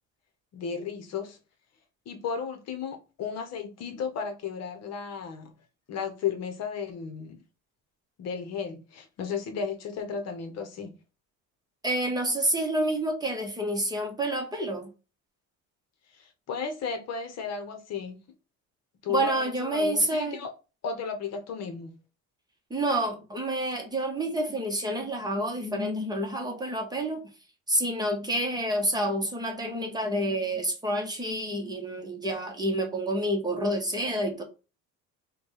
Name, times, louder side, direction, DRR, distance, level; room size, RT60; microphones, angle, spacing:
voice 1, 0.5-1.4 2.1-5.5 5.9-7.4 8.2-11.0 16.1-18.2 19.0-20.5 20.8-22.0, left 6 dB, 55° left, 0.9 m, -34 dB
voice 2, 11.8-14.9 19.1-20.4 22.7-27.2 27.7-34.4, right 1 dB, 10° right, 0.9 m, -28 dB
5.1 x 2.3 x 3.0 m
cardioid pair, 140°, 32 cm